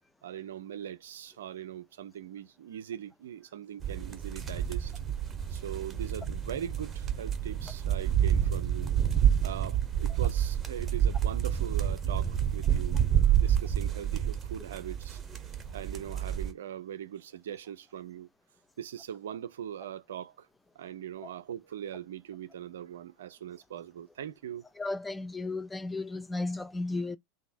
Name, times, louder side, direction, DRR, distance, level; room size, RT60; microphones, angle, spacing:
voice 1, 0.2-4.9 5.5-8.9 9.4-13.0 13.4-15.2 15.7-18.3 18.8-20.5 20.8-24.6, right 10 dB, 65° right, 0.5 m, -41 dB
sound 1, 3.8-16.5, right 9 dB, 20° right, 1.0 m, -28 dB
voice 2, 24.8-27.2, left 2 dB, 10° left, 0.5 m, -34 dB
2.9 x 2.5 x 4.1 m
figure-of-eight pair, 85°, 0 cm